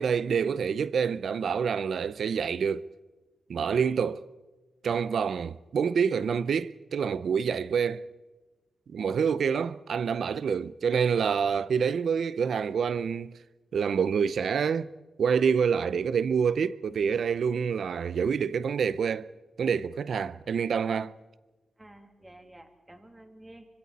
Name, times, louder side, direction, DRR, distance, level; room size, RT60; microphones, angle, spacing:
voice 1, 0.0-2.9 3.5-4.2 4.8-8.0 8.9-13.3 13.7-14.9 15.2-19.3 19.6-21.1, right 6 dB, 70° right, 0.6 m, -27 dB
voice 2, 21.8-23.7, right 1 dB, 10° right, 2.3 m, -51 dB
25.5 x 25.0 x 4.2 m
wide cardioid pair, 135°, 0 cm